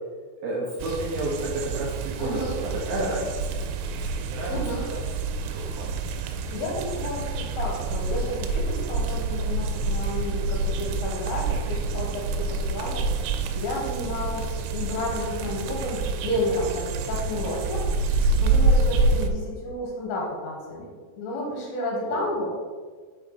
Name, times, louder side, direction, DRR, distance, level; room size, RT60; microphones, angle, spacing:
voice 1, 0.4-4.0 4.3-4.6 4.9-5.0 5.5-5.9 18.5-18.9 22.0-22.2, right 1 dB, 70° right, -4 dB, 2.3 m, -31 dB
sound 1, 0.8-19.3, right 3 dB, 90° right, 3.3 m, -27 dB
voice 2, 2.2-2.5 4.5-4.8 6.4-13.0 13.5-17.8 18.4-20.9 21.2-22.5, left 1 dB, 65° left, -3 dB, 2.9 m, -31 dB
6.7 x 6.3 x 4.0 m, 1.5 s
omnidirectional pair, 5.7 m